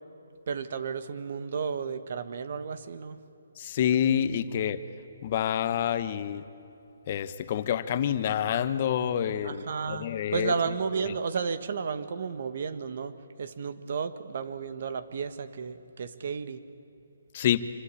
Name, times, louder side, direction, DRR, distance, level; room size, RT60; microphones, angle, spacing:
voice 1, 0.5-3.2 9.4-16.6, right 5 dB, 55° right, 11 dB, 1.6 m, -33 dB
voice 2, 3.6-4.8 5.2-6.4 7.1-10.5 17.3-17.7, left 9 dB, 35° left, 12 dB, 1.1 m, -27 dB
26.5 x 25.5 x 8.6 m, 2.8 s
hypercardioid pair, 160°, 0 cm